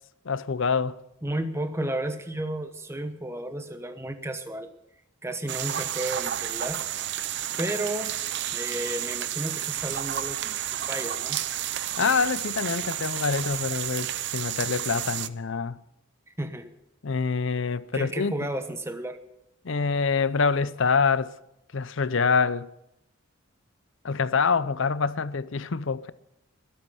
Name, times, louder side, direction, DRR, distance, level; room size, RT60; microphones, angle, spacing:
voice 1, 0.2-1.0 12.0-15.8 17.0-18.3 19.6-21.3 21.7-22.7 24.0-26.1, left 5 dB, 60° left, 0.6 m, -25 dB
voice 2, 1.2-4.7 5.2-6.8 7.6-8.2 8.5-11.4 16.4-16.7 17.9-19.2, right 1 dB, 10° right, 1.0 m, -32 dB
sound 1, 5.5-15.3, right 11 dB, 50° right, 0.6 m, -31 dB
20.5 x 8.6 x 7.0 m
head